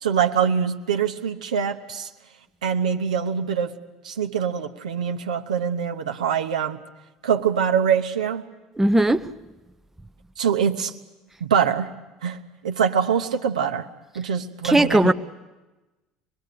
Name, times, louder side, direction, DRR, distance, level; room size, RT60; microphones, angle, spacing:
voice 1, 0.0-2.1 2.6-3.7 4.0-6.8 7.2-8.4 10.4-10.9 11.4-11.9 12.2-12.4 12.6-13.9 14.1-15.1, right 7 dB, 75° right, 5 dB, 0.9 m, -24 dB
voice 2, 8.8-9.3 14.6-15.1, right 1 dB, 10° right, 9 dB, 0.7 m, -18 dB
25.5 x 20.5 x 6.7 m, 1.1 s
figure-of-eight pair, 60°, 4 cm